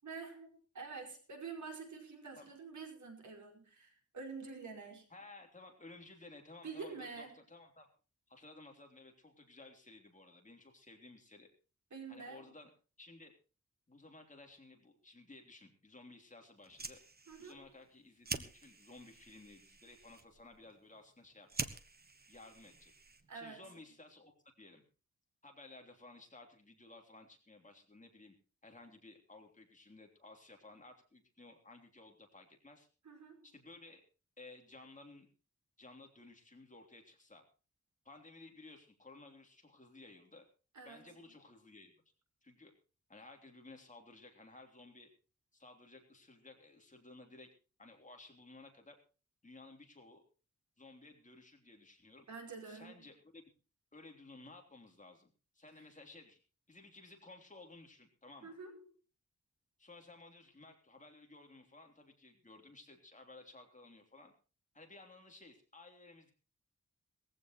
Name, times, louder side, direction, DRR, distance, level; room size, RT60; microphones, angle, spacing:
voice 1, 0.0-5.1 6.6-7.4 11.9-12.6 17.3-17.6 23.3-23.7 33.0-33.5 40.7-41.2 52.3-53.1 55.8-55.9 58.4-58.8, right 4 dB, 70° right, 3 dB, 5.4 m, -48 dB
voice 2, 5.1-7.9 8.3-11.5 12.1-12.7 13.0-13.3 13.9-17.0 17.4-21.7 22.3-22.9 23.3-24.3 24.6-24.8 25.4-28.3 28.6-32.9 33.4-34.0 34.4-35.3 35.8-37.4 38.0-40.4 40.8-41.9 42.4-42.7 43.1-45.1 45.5-47.5 47.8-48.9 49.4-50.2 50.8-52.2 52.6-53.4 53.9-56.4 56.7-58.6 59.8-64.3 64.7-66.3, left 2 dB, 25° left, 2 dB, 3.4 m, -56 dB
Fire, 16.6-23.5, right 3 dB, 30° right, 1.3 m, -47 dB
20.0 x 15.5 x 3.1 m, 0.35 s
wide cardioid pair, 170°, 30 cm